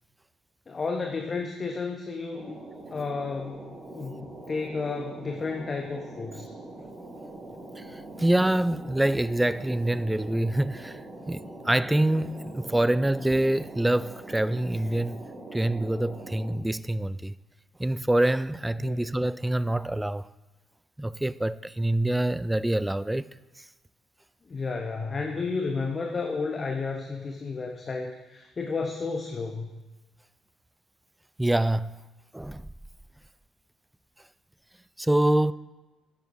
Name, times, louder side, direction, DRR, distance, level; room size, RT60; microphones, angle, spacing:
voice 1, 0.7-2.6 2.9-6.5 18.8-19.0 24.5-29.8, left 4 dB, 35° left, 0.9 m, -32 dB
sound 1, 2.3-16.5, right 2 dB, 35° right, 1.7 m, -43 dB
voice 2, 7.8-15.3 15.5-17.3 17.8-20.3 21.0-23.3 31.4-31.9 32.3-32.7 35.0-35.5, right 1 dB, 10° right, 0.3 m, -26 dB
11.0 x 9.1 x 2.6 m
figure-of-eight pair, 45°, 0 cm